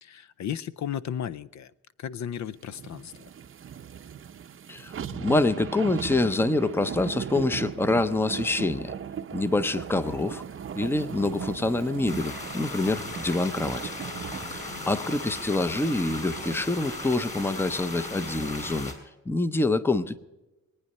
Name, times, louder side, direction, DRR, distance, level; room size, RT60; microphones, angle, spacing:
voice 1, 0.0-1.7 2.0-3.3 14.7-15.2, left 9 dB, 65° left, 0.5 m, -35 dB
sound 1, 2.6-17.1 17.5-17.6, right 8 dB, 45° right, 0.6 m, -38 dB
voice 2, 4.7-8.9 9.3-10.4 10.7-13.9 14.5-18.9 19.3-20.2, left 2 dB, 5° left, 0.6 m, -26 dB
sound 2, 12.1-18.9, left 2 dB, 25° left, 3.0 m, -37 dB
23.0 x 9.5 x 5.4 m
wide cardioid pair, 170°, 31 cm